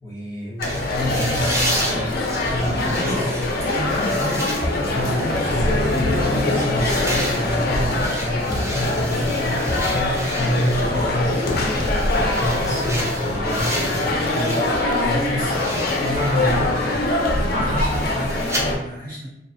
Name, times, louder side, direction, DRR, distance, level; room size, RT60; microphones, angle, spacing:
voice 1, 0.0-3.5 3.9-4.4 4.9-17.0, equal, 20° left, -7 dB, 0.8 m, -28 dB
sound 1, 0.6-18.8, left 2 dB, 60° left, 0.4 m, -23 dB
sound 2, 0.6-14.8 15.2-18.6, right 1 dB, 15° right, 0.4 m, -32 dB
voice 2, 2.6-3.3 3.7-5.1 15.3-15.6 15.9-16.7 17.6-19.3, equal, 55° right, -8 dB, 1.4 m, -32 dB
Fowl, 10.8-12.9 13.3-14.0 14.5-15.5 15.9-18.7, equal, 35° right, 1.0 m, -30 dB
2.7 x 2.0 x 2.5 m, 0.84 s
head